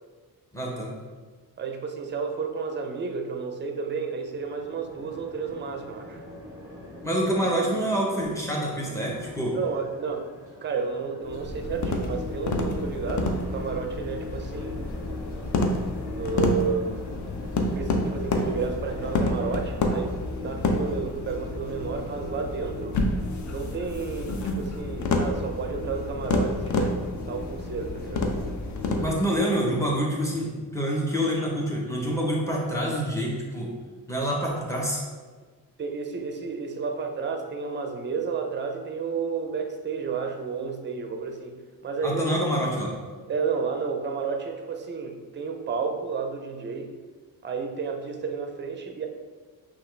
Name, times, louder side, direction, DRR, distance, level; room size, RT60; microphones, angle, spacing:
voice 1, 0.5-0.9 7.0-9.5 29.0-33.7 34.1-35.0 42.0-42.9, equal, 10° left, -3 dB, 0.9 m, -26 dB
voice 2, 1.6-6.2 9.5-10.3 10.6-14.8 16.1-16.9 17.7-23.0 23.5-27.0 27.3-28.3 28.9-29.3 35.8-41.6 41.8-42.2 43.3-46.9 47.4-49.1, right 5 dB, 30° right, 5 dB, 0.5 m, -31 dB
sound 1, 4.2-20.0, equal, 10° right, 1.4 m, -45 dB
sound 2, 11.2-29.1, left 2 dB, 50° left, 0.5 m, -29 dB
5.5 x 2.4 x 3.2 m, 1.4 s
cardioid pair, 105°, 38 cm